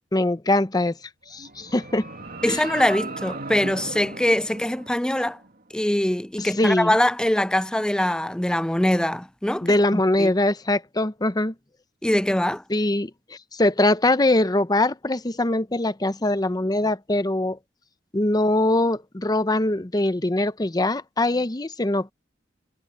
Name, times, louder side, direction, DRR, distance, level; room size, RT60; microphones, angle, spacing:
voice 1, 0.1-1.0 1.3-2.1 2.4-2.6 6.4-6.9 9.6-11.5 12.7-17.6 18.1-22.1, left 1 dB, 20° left, 0.8 m, -22 dB
sound 1, 1.3-5.5, right 3 dB, 55° right, 2.7 m, -37 dB
voice 2, 2.4-5.4 5.7-10.3 12.0-12.6, left 1 dB, 5° left, 0.4 m, -23 dB
head